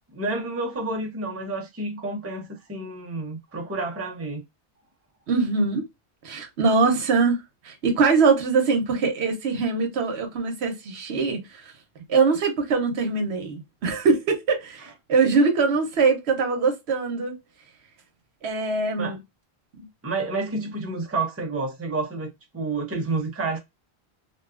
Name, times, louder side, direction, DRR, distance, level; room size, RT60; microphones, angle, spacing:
voice 1, 0.1-4.4 14.8-14.9 19.0-19.2 20.0-23.6, right 3 dB, 15° right, 0.6 m, -29 dB
voice 2, 5.3-5.8 6.2-11.7 12.1-17.4 18.4-19.2 19.7-19.9, right 4 dB, 80° right, 1.0 m, -23 dB
2.6 x 2.3 x 2.3 m
omnidirectional pair, 1.1 m